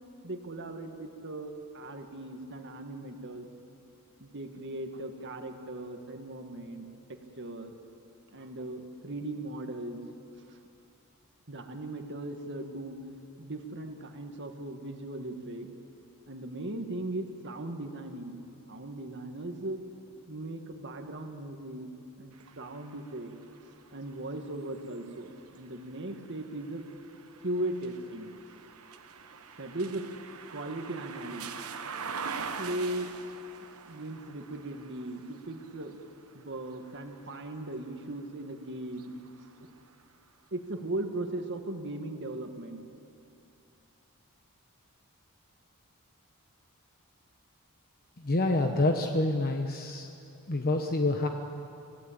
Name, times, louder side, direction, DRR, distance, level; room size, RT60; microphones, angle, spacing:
voice 1, 0.2-3.5 4.2-7.7 8.3-10.0 10.5-10.6 11.5-13.0 13.4-15.7 16.3-18.4 18.7-19.8 20.3-21.9 22.2-23.4 23.6-26.8 27.4-28.3 29.6-30.1 30.5-31.7 32.1-33.1 33.9-36.0 36.3-39.1 40.5-42.8, right 1 dB, 55° right, 5 dB, 1.9 m, -38 dB
sound 1, 22.3-38.3 38.8-40.0, right 6 dB, 75° right, 1.2 m, -45 dB
voice 2, 48.2-50.1 50.5-51.3, left 2 dB, 40° left, 4 dB, 1.1 m, -27 dB
26.0 x 16.5 x 8.8 m, 2.7 s
head